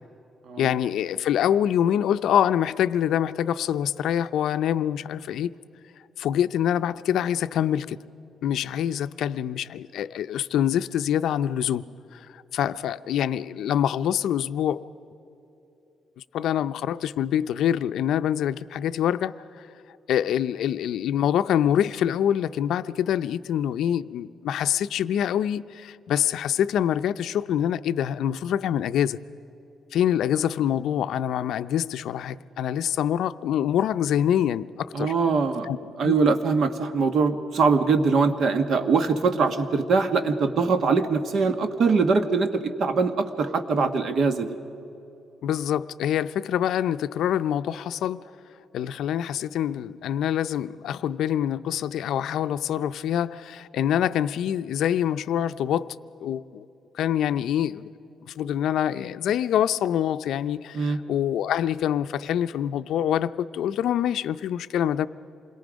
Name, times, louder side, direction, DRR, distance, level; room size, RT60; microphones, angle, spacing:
voice 1, 0.6-5.5 6.2-8.0 8.4-11.8 12.1-14.8 16.3-19.7 20.1-29.2 29.9-35.1 35.6-35.8 36.0-36.2 45.4-48.3 48.7-56.6 56.9-57.8 58.3-65.1, left 10 dB, 75° left, 0.5 m, -25 dB
voice 2, 34.9-35.7 36.0-44.6 60.7-61.0, right 4 dB, 50° right, 1.2 m, -22 dB
27.5 x 21.5 x 5.1 m
cardioid pair, 160°, 0 cm